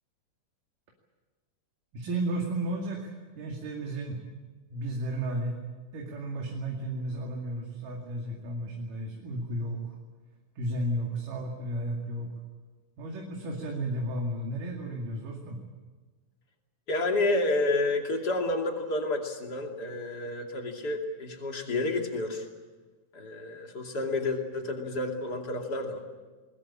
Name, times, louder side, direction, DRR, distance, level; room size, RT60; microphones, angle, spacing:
voice 1, 1.9-4.2 4.7-5.6 5.9-10.0 10.6-12.3 13.0-15.6, right 1 dB, 80° right, -1 dB, 4.0 m, -33 dB
voice 2, 16.9-22.5 23.1-26.0, left 2 dB, 30° left, 2 dB, 2.9 m, -30 dB
22.0 x 20.0 x 8.7 m, 1.3 s
omnidirectional pair, 3.8 m